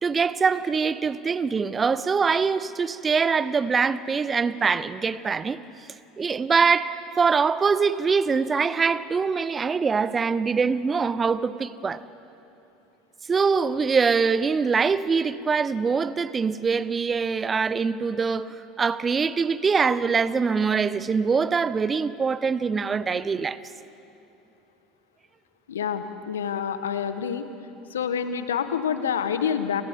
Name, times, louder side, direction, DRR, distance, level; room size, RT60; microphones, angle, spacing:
voice 1, 0.0-5.6 6.2-12.0 13.3-18.5 18.8-23.6, right 5 dB, 25° right, 16 dB, 0.8 m, -23 dB
voice 2, 25.7-27.5 27.9-29.8, left 7 dB, 80° left, 10 dB, 1.2 m, -27 dB
30.0 x 28.0 x 3.8 m, 2.9 s
figure-of-eight pair, 75°, 0 cm